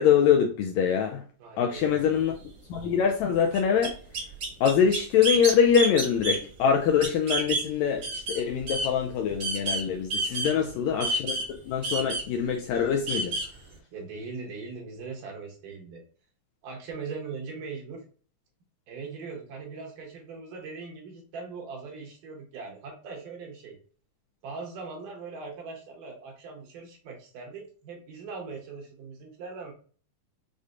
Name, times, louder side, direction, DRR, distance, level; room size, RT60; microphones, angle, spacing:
voice 1, 0.0-1.2 1.6-2.3 2.7-3.9 4.6-11.4 11.7-13.4, left 7 dB, 80° left, 3 dB, 1.6 m, -24 dB
voice 2, 1.4-2.1 10.3-10.7 13.9-16.0 16.6-18.0 18.9-23.8 24.4-29.7, right 4 dB, 85° right, -1 dB, 2.7 m, -40 dB
sound 1, 1.8-1.9 2.3-2.4 2.8-2.9 3.5-7.7 8.0-9.8 10.1-10.7 11.0-13.5, right 2 dB, 55° right, 1.5 m, -29 dB
6.3 x 2.1 x 2.5 m, 0.42 s
omnidirectional pair, 3.6 m